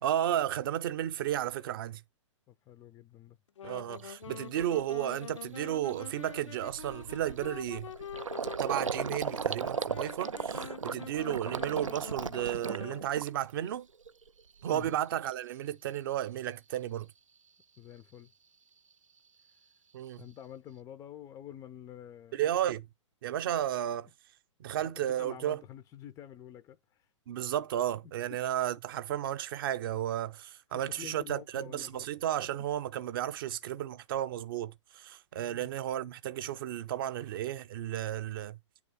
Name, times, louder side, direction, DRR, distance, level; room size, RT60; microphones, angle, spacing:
voice 1, 0.0-2.0 3.6-7.9 8.6-13.9 14.6-17.1 19.9-20.2 22.3-22.9 23.2-24.1 24.6-25.6 27.3-38.6, right 11 dB, 45° right, 0.7 m, -33 dB
voice 2, 2.5-3.4 14.6-15.0 17.8-18.3 20.2-22.4 24.8-27.1 30.7-32.1 32.4-32.5 35.4-35.7, left 10 dB, 15° left, 0.5 m, -48 dB
Wind instrument woodwind instrument, 3.6-13.1, left 8 dB, 65° left, 0.5 m, -45 dB
Gurgling, 4.0-4.1 4.6-4.8 5.2-5.4 5.6-13.7 14.0-14.7, right 5 dB, 80° right, 0.5 m, -37 dB
9.5 x 3.5 x 6.6 m
figure-of-eight pair, 115°, 16 cm